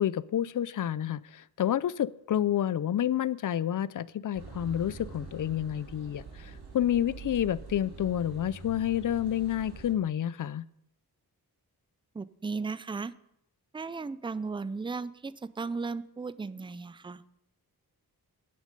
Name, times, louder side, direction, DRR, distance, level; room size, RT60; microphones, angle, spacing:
voice 1, 0.0-10.7, left 10 dB, 55° left, 18 dB, 0.4 m, -29 dB
sound 1, 4.3-9.9, right 4 dB, 75° right, 2.3 m, -45 dB
voice 2, 12.1-13.1 13.7-17.2, right 4 dB, 15° right, 16 dB, 0.3 m, -36 dB
10.5 x 9.5 x 5.2 m, 0.77 s
wide cardioid pair, 140°, 39 cm